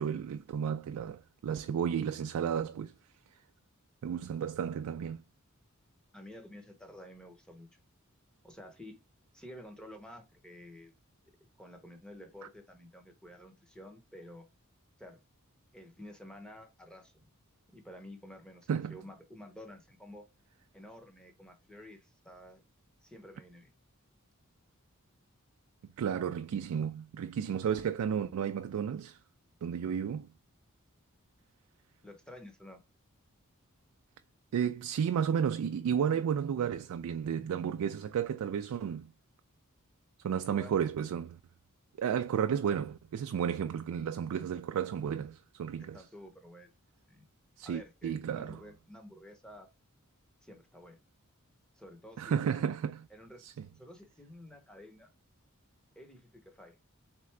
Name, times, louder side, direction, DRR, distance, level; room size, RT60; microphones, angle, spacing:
voice 1, 0.0-2.9 4.0-5.2 18.7-19.0 26.0-29.2 29.6-30.3 34.5-39.1 40.2-41.4 42.0-46.0 47.6-48.6 52.2-53.0 53.4-53.5, right 8 dB, 90° right, 0.3 m, -32 dB
voice 2, 6.1-7.8 8.4-9.0 9.3-10.9 11.6-14.5 15.0-15.2 15.7-17.3 17.7-20.3 20.7-22.6 23.0-23.7 32.0-32.8 40.3-40.8 45.8-46.7 47.1-47.3 47.6-49.7 50.4-51.0 51.7-52.7 53.1-53.5 53.7-55.1 56.0-56.8, left 1 dB, 5° left, 0.8 m, -51 dB
3.7 x 3.3 x 3.2 m
head